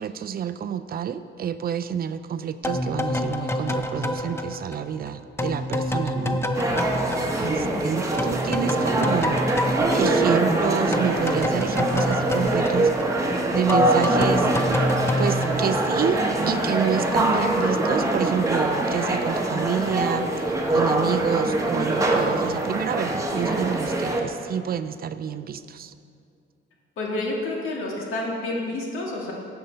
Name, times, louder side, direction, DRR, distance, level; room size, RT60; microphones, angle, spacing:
voice 1, 0.0-6.5 7.4-14.5 15.2-20.3 20.7-25.9, right 8 dB, 45° right, 11 dB, 0.4 m, -28 dB
sound 1, 2.6-7.9 8.2-16.4, left 1 dB, 10° left, 0.6 m, -28 dB
sound 2, 6.5-24.2, right 2 dB, 15° right, 1.1 m, -24 dB
voice 2, 27.0-29.3, left 2 dB, 80° left, -2 dB, 1.8 m, -29 dB
12.0 x 7.8 x 4.4 m, 2.4 s
cardioid pair, 125°, 21 cm